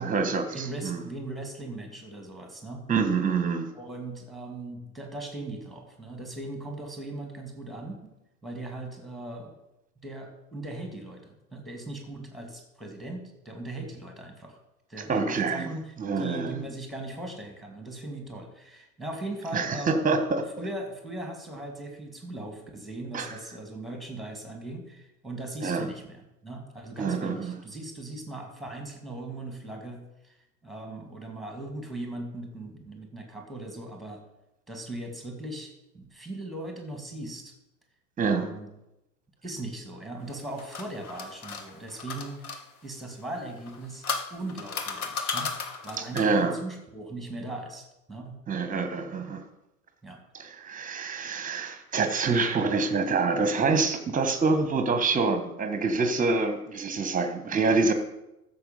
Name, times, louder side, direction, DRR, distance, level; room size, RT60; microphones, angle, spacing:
voice 1, 0.0-1.0 2.9-3.7 15.1-15.7 16.0-16.6 19.5-20.4 23.1-23.3 25.6-25.9 27.0-27.6 38.2-38.5 46.1-46.6 48.5-49.4 50.3-57.9, right 4 dB, 15° right, 8 dB, 1.5 m, -26 dB
voice 2, 0.5-2.9 3.7-8.1 8.4-9.5 10.0-14.6 14.9-20.1 20.6-30.4 30.6-34.2 34.7-37.5 38.2-38.7 39.4-42.5 42.8-44.0 44.3-45.5 45.8-48.4 50.0-50.2, right 2 dB, ahead, 3 dB, 2.6 m, -39 dB
sound 1, 40.3-42.6 43.6-46.4, left 5 dB, 65° left, 1.6 m, -35 dB
14.5 x 7.2 x 5.4 m, 0.90 s
figure-of-eight pair, 85°, 47 cm